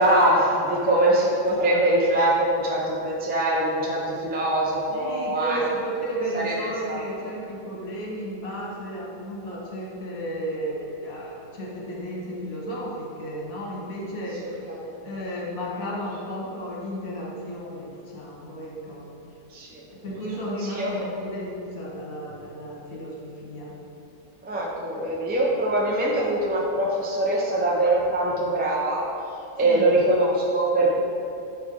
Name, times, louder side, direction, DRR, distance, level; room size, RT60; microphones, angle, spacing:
voice 1, 0.0-5.6 6.3-6.5 6.9-7.0 19.5-19.8 20.7-20.9 24.4-29.0 29.6-31.0, right 1 dB, 15° right, -3 dB, 0.3 m, -22 dB
voice 2, 4.9-14.6 15.0-19.1 19.9-23.8 29.6-29.9, right 1 dB, 60° left, -4 dB, 1.6 m, -33 dB
9.5 x 3.3 x 3.8 m, 2.7 s
omnidirectional pair, 1.7 m